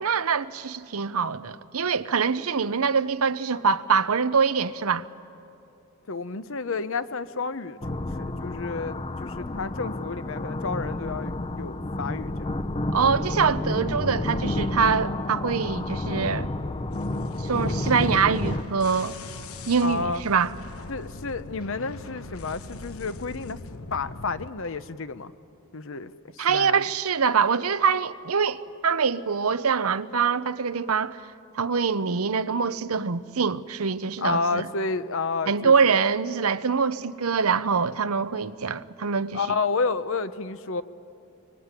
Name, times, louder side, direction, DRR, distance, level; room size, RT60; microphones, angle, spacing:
voice 1, 0.0-5.0 12.9-16.5 17.4-19.2 19.7-20.5 26.4-31.2 31.5-34.7 35.5-39.4, right 5 dB, 90° right, 0.8 m, -24 dB
voice 2, 6.1-12.6 19.8-20.2 20.9-23.6 23.9-25.3 25.7-26.9 34.2-36.0 39.3-40.8, left 4 dB, 65° left, 0.9 m, -30 dB
sound 1, 7.8-18.6, left 2 dB, 25° left, 0.6 m, -30 dB
sound 2, 16.9-24.5, left 3 dB, 80° left, 1.1 m, -40 dB
24.5 x 23.5 x 9.8 m
head